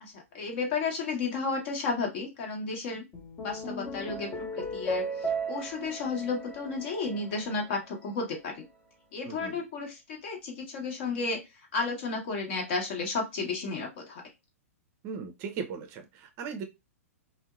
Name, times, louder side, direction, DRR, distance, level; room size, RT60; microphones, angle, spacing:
voice 1, 0.0-3.0 3.4-8.6 9.1-11.4 11.7-14.2, left 4 dB, 50° left, 1.1 m, -33 dB
sound 1, 3.1-7.7, right 2 dB, 25° left, 0.8 m, -36 dB
voice 2, 9.2-9.6 15.0-16.6, right 6 dB, 35° right, 0.5 m, -38 dB
2.7 x 2.1 x 2.4 m
figure-of-eight pair, 110°, 8 cm